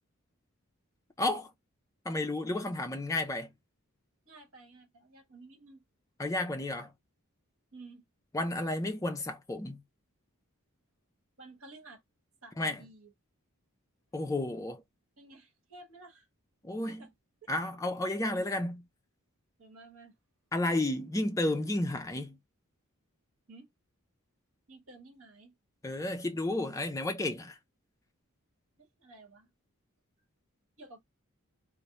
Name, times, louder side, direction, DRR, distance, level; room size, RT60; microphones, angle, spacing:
voice 1, 1.2-1.5 2.1-3.5 6.2-6.9 8.3-9.8 12.6-12.8 14.1-14.8 16.6-17.1 17.5-18.8 20.5-22.4 25.8-27.6, left 2 dB, 15° left, 0.4 m, -32 dB
voice 2, 4.2-5.8 7.7-8.0 11.4-12.0 12.4-13.1 15.2-16.3 16.9-17.1 17.4-17.5 19.6-20.1 23.5-23.7 24.7-25.5 28.8-29.5 30.8-31.0, right 2 dB, 65° right, 1.0 m, -53 dB
2.2 x 2.0 x 2.8 m
head